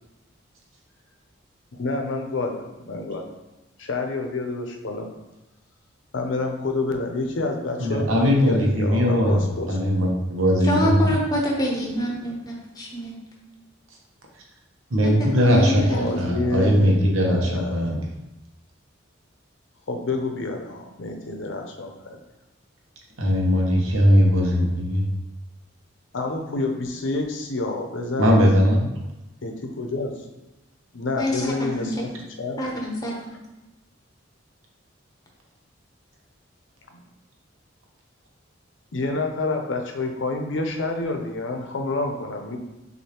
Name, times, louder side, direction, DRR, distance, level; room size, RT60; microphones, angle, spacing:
voice 1, 1.8-3.2 3.8-5.1 6.1-9.7 15.8-17.9 19.9-22.2 26.1-28.4 29.4-30.2 30.9-31.9 32.4-32.6 36.9-37.0 38.9-42.6, left 2 dB, 65° left, 3 dB, 0.6 m, -28 dB
voice 2, 7.8-11.2 14.9-18.0 23.2-25.1 28.2-28.9, equal, 90° right, -1 dB, 1.0 m, -20 dB
voice 3, 10.6-13.2 15.0-16.2 31.2-31.9 32.6-33.1, equal, 20° left, -2 dB, 0.8 m, -26 dB
6.2 x 2.6 x 3.0 m, 0.98 s
head